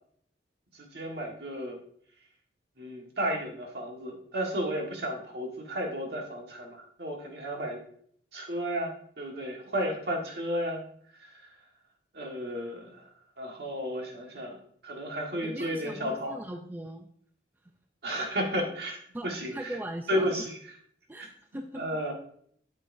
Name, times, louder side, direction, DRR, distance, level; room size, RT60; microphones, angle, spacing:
voice 1, 0.7-1.8 2.8-7.8 8.3-10.8 11.2-11.3 12.1-13.0 13.4-16.4 18.0-19.0 19.2-19.7 20.1-20.6 21.2-21.3 21.7-22.1, equal, 60° right, 2 dB, 1.5 m, -33 dB
voice 2, 15.4-17.1 19.1-20.5 21.1-22.0, right 1 dB, 10° right, 5 dB, 0.4 m, -40 dB
8.3 x 7.4 x 2.6 m, 0.63 s
head